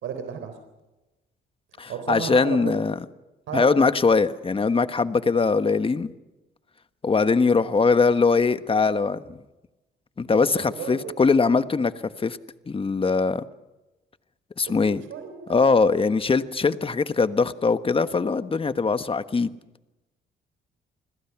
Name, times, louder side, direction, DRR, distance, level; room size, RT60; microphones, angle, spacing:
voice 1, 0.0-0.5 1.9-2.8 3.5-3.9 10.3-11.2 14.7-15.6, right 7 dB, 80° right, 7 dB, 3.7 m, -34 dB
voice 2, 1.8-3.0 3.5-6.1 7.0-9.4 10.2-11.9 12.2-12.4 12.7-13.4 14.6-15.0 15.5-19.5, left 4 dB, 25° left, 11 dB, 1.3 m, -21 dB
29.5 x 21.0 x 5.9 m, 1.0 s
cardioid pair, 90°, 20 cm